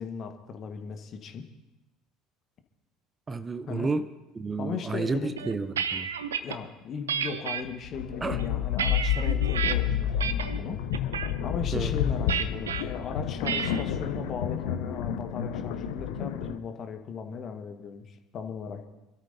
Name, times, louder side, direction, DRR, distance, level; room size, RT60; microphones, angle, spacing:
voice 1, 0.0-1.5 3.6-3.9 4.6-5.3 6.4-10.8 11.4-18.9, left 6 dB, 45° left, 6 dB, 1.5 m, -37 dB
voice 2, 3.3-4.1 4.4-6.1 8.2-8.4 11.7-11.9, right 3 dB, 25° right, 12 dB, 0.7 m, -31 dB
sound 1, 5.4-6.6 7.1-7.6 8.2-9.7 10.2-10.6 10.9-11.3 12.3-12.8 13.4-13.8, right 7 dB, 80° right, 0.6 m, -31 dB
sound 2, 7.7-16.6, left 9 dB, 65° left, 0.7 m, -30 dB
26.5 x 13.0 x 2.8 m, 1.0 s
figure-of-eight pair, 60°, 0 cm